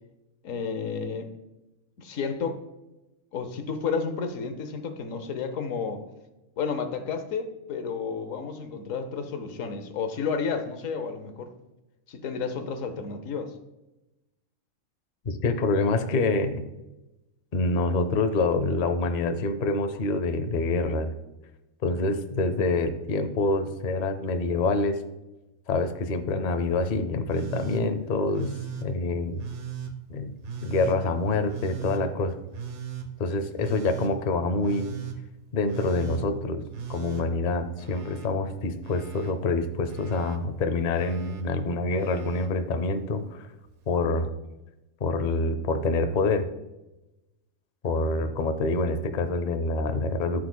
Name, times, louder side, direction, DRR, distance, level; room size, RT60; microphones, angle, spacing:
voice 1, 0.4-1.3 2.0-2.6 3.3-6.0 6.6-11.5 12.1-13.5, left 5 dB, 80° left, 8 dB, 1.2 m, -31 dB
voice 2, 15.3-16.6 17.5-21.1 21.8-25.0 25.7-28.5 28.8-29.4 30.1-30.3 30.6-32.3 33.2-35.0 35.5-36.6 36.9-43.5 43.9-44.3 45.0-46.5 47.8-50.5, left 3 dB, 50° left, 8 dB, 0.6 m, -26 dB
Telephone, 27.3-27.8 28.3-28.9 29.4-29.9 30.4-31.0 31.5-32.0 32.5-33.1 33.6-34.1 34.6-35.2 35.7-36.2 36.7-38.3 38.6-39.3 39.9-40.4 40.9-41.4 42.0-42.5 43.7-43.8, right 7 dB, 65° right, 1.1 m, -38 dB
13.0 x 4.7 x 2.2 m, 0.99 s
omnidirectional pair, 1.3 m